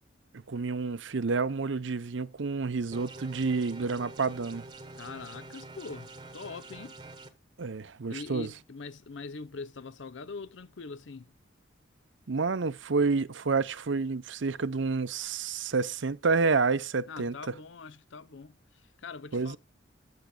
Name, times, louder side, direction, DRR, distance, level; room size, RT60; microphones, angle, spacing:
voice 1, 0.5-4.6 7.6-8.5 12.3-17.5 19.3-19.6, right 4 dB, 75° right, 0.7 m, -29 dB
sound 1, 2.9-7.3, right 2 dB, 20° right, 1.1 m, -46 dB
voice 2, 4.9-7.0 8.1-11.3 17.1-18.6 19.0-19.6, left 4 dB, 75° left, 0.6 m, -42 dB
15.5 x 7.3 x 2.3 m
head